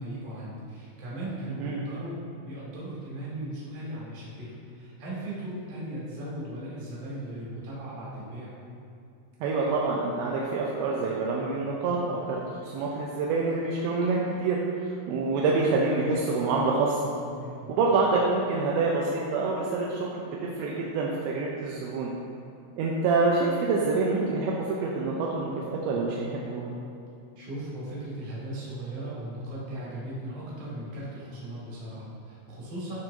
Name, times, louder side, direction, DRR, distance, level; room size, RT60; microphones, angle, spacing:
voice 1, 0.0-8.5 17.3-17.7 27.4-33.0, right 1 dB, 55° right, -7 dB, 2.8 m, -37 dB
voice 2, 9.4-14.6 15.1-17.0 17.7-22.1 22.8-26.7, right 3 dB, 85° right, -3 dB, 2.7 m, -27 dB
12.0 x 4.6 x 2.6 m, 2.5 s
omnidirectional pair, 5.6 m